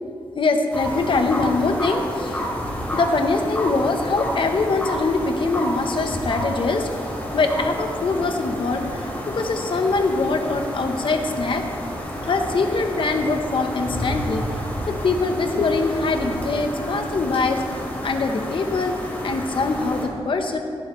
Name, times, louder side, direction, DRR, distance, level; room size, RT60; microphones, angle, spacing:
voice 1, 0.4-2.4 2.9-6.9 7.3-11.6 12.2-14.4 14.9-20.6, left 3 dB, 60° left, 5 dB, 1.1 m, -23 dB
sound 1, 0.7-20.0, equal, 15° left, 2.9 m, -30 dB
17.0 x 9.6 x 3.3 m, 2.4 s
wide cardioid pair, 125°, 10 cm